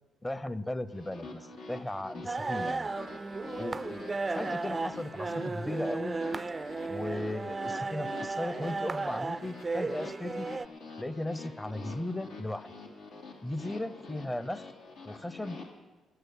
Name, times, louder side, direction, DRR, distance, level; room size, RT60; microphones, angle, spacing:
voice 1, 0.2-2.9 3.6-6.2 6.9-10.5 11.0-12.7 13.4-14.6 15.0-15.6, left 1 dB, 15° left, 14 dB, 0.8 m, -36 dB
sound 1, 0.9-15.6, left 3 dB, 80° left, 2.7 m, -46 dB
sound 2, 2.3-10.7, right 3 dB, 25° right, 0.4 m, -35 dB
12.5 x 9.5 x 9.3 m, 1.2 s
cardioid pair, 90°, 0 cm